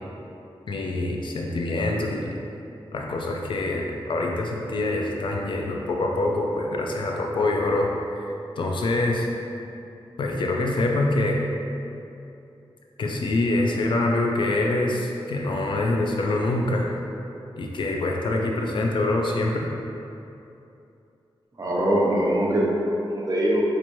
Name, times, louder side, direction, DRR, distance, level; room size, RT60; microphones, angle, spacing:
voice 1, 0.7-2.4 2.9-7.9 8.6-9.3 10.2-11.4 13.0-16.9 17.6-19.7, left 2 dB, 60° left, 0 dB, 0.4 m, -25 dB
voice 2, 21.6-23.6, right 1 dB, 40° right, -5 dB, 0.6 m, -22 dB
4.4 x 2.5 x 3.0 m, 2.8 s
wide cardioid pair, 115°, 9 cm